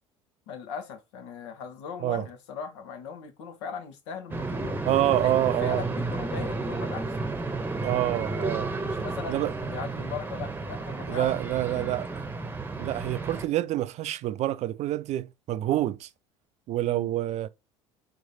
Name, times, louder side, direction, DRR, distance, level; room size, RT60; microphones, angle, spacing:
voice 1, 0.5-4.8 5.2-7.3 8.8-11.9 16.8-17.1, left 6 dB, 75° left, 1.2 m, -39 dB
sound 1, 4.3-13.5, right 3 dB, 15° right, 0.9 m, -32 dB
voice 2, 4.9-5.8 7.8-8.7 9.3-9.5 11.1-12.3 12.8-16.1 16.7-17.5, right 14 dB, 50° right, 0.5 m, -27 dB
4.0 x 3.2 x 4.0 m
hypercardioid pair, 70°, 15 cm